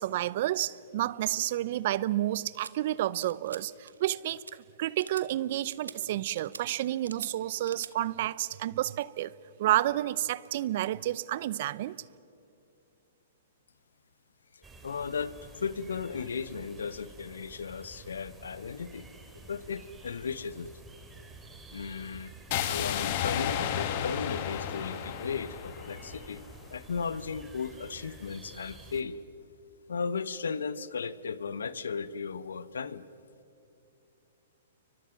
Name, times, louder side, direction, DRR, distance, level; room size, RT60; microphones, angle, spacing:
voice 1, 0.0-4.4 4.8-9.3 9.6-12.0, right 14 dB, 55° right, 0.6 m, -30 dB
sound 1, 2.6-2.7 3.2-3.6 3.9-4.1 4.4-4.5 5.0-5.3 5.7-6.0 6.4-6.6 7.0-7.3 7.7-7.9, right 5 dB, 90° right, 1.1 m, -44 dB
voice 2, 14.5-19.1 19.3-20.7 21.7-22.3 22.7-26.4 26.7-29.2 29.9-33.1, left 5 dB, 80° left, 1.0 m, -36 dB
sound 2, 14.6-29.0, right 2 dB, 10° right, 2.9 m, -50 dB
sound 3, 22.5-26.6, left 9 dB, 50° left, 1.9 m, -32 dB
30.0 x 24.5 x 5.9 m
hypercardioid pair, 125°, 0 cm